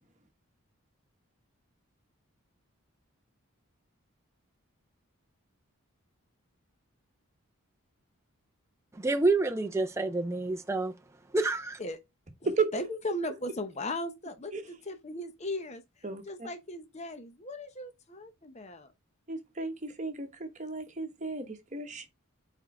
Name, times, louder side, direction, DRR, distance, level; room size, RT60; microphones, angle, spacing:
voice 1, 9.0-10.9 11.3-11.8, right 2 dB, 10° right, 0.4 m, -28 dB
voice 2, 12.7-14.5 14.9-15.8 16.3-18.9, left 1 dB, 30° left, 0.8 m, -37 dB
voice 3, 16.0-16.5 19.3-22.1, right 4 dB, 35° right, 1.1 m, -34 dB
4.5 x 4.5 x 4.7 m
head